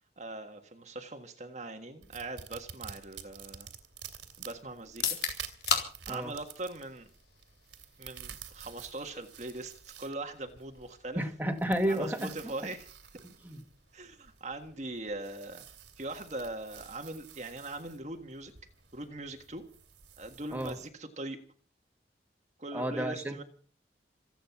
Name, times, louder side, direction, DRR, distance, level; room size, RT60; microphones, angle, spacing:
voice 1, 0.2-3.7 4.4-5.2 6.1-7.1 8.0-11.2 11.9-12.9 13.9-15.7 16.0-18.5 18.9-19.6 20.2-21.4 22.6-23.4, right 2 dB, 40° right, 4 dB, 1.6 m, -41 dB
sound 1, 2.0-20.9, right 8 dB, 85° right, 2.7 m, -50 dB
sound 2, 4.9-18.7, left 7 dB, 65° left, 4.1 m, -42 dB
voice 2, 11.2-12.3 13.4-13.6 20.5-20.8 22.7-23.4, equal, 10° right, 4 dB, 2.0 m, -31 dB
27.0 x 9.1 x 5.9 m, 0.44 s
head